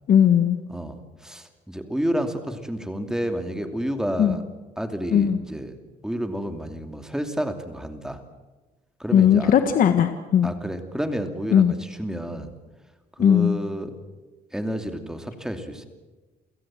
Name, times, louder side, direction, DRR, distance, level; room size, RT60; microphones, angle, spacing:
voice 1, 0.1-0.6 4.2-4.3 5.1-5.4 9.1-10.5 11.5-11.7 13.2-13.6, left 8 dB, 55° left, 8 dB, 1.5 m, -18 dB
voice 2, 0.7-4.4 4.8-8.2 9.0-9.5 10.4-12.5 13.2-14.0 14.5-15.9, equal, 5° right, 7 dB, 2.7 m, -30 dB
29.0 x 16.5 x 7.6 m, 1.2 s
cardioid pair, 110°, 17 cm